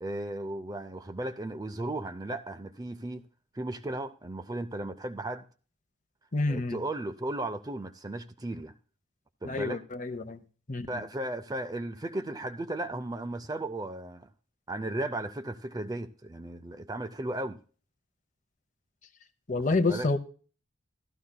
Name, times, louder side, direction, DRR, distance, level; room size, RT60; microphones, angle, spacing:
voice 1, 0.0-3.3 3.5-5.4 6.5-8.7 9.4-9.8 10.9-14.3 14.7-17.6 19.5-20.1, right 1 dB, 20° right, 0.5 m, -35 dB
voice 2, 6.3-6.8 9.5-10.4 10.7-11.0 19.5-20.2, left 3 dB, 35° left, 0.7 m, -28 dB
15.0 x 12.5 x 2.2 m
head